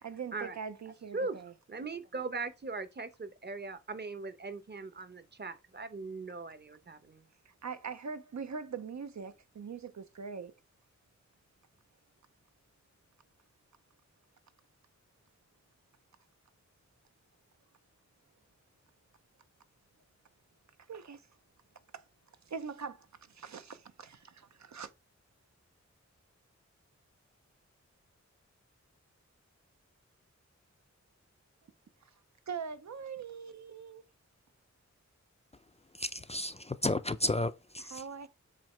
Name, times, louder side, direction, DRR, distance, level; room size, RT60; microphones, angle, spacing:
voice 1, 0.0-1.5 7.5-10.5 20.9-21.2 21.9-22.0 22.5-24.9 32.5-34.1 37.8-38.3, right 6 dB, 70° right, 0.7 m, -42 dB
voice 2, 1.7-7.3, right 3 dB, 35° right, 0.8 m, -40 dB
voice 3, 36.0-38.0, left 2 dB, 20° left, 0.4 m, -33 dB
7.5 x 2.8 x 4.4 m
wide cardioid pair, 90°, 29 cm